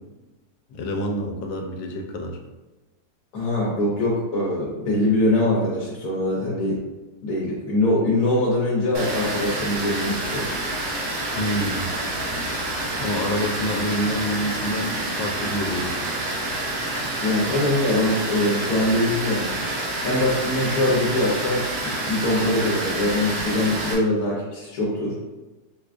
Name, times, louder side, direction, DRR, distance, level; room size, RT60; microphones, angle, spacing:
voice 1, 0.7-2.4 11.4-11.9 13.0-16.0, equal, 85° left, 2 dB, 1.3 m, -27 dB
voice 2, 3.3-6.8 7.2-10.5 17.2-19.6 20.0-25.1, left 1 dB, 65° left, -6 dB, 1.2 m, -23 dB
Water, 8.9-23.9, right 1 dB, 90° right, 1.5 m, -28 dB
4.9 x 2.3 x 2.4 m, 1.1 s
omnidirectional pair, 1.9 m